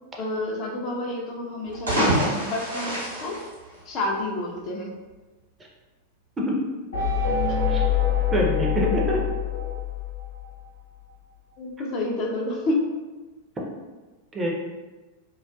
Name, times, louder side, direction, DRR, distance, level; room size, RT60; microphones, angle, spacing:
voice 1, 0.2-3.4 3.9-4.9 7.5-7.6 11.6-12.9, left 2 dB, 35° left, -1 dB, 0.4 m, -29 dB
sound 1, 1.6-4.3, equal, 80° right, 0.8 m, -26 dB
sound 2, 6.9-10.7, left 7 dB, 75° left, 0.8 m, -25 dB
voice 2, 8.3-9.2 14.3-14.5, equal, 15° right, -2 dB, 0.5 m, -24 dB
2.4 x 2.3 x 2.3 m, 1.2 s
figure-of-eight pair, 90°, 0 cm